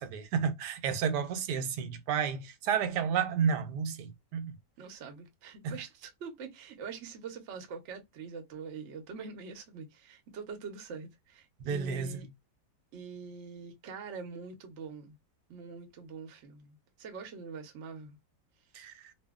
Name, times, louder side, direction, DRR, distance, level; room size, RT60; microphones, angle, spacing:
voice 1, 0.0-4.5 5.6-5.7 11.6-12.2 18.7-18.9, right 7 dB, 85° right, 1.2 m, -31 dB
voice 2, 4.8-12.3 12.9-15.1 15.5-18.2 18.8-18.9, right 5 dB, 55° right, 0.9 m, -44 dB
2.6 x 2.6 x 2.3 m
omnidirectional pair, 1.7 m